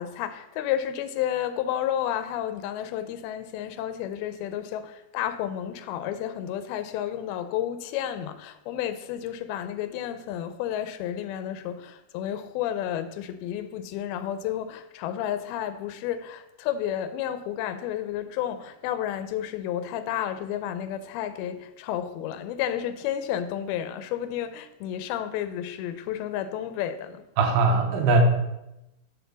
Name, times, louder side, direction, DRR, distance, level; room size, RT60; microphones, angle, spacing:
voice 1, 0.0-27.2, left 10 dB, 85° left, 2.5 m, -31 dB
voice 2, 27.4-28.2, right 3 dB, 75° right, 2.6 m, -20 dB
6.7 x 4.4 x 6.7 m
omnidirectional pair, 4.3 m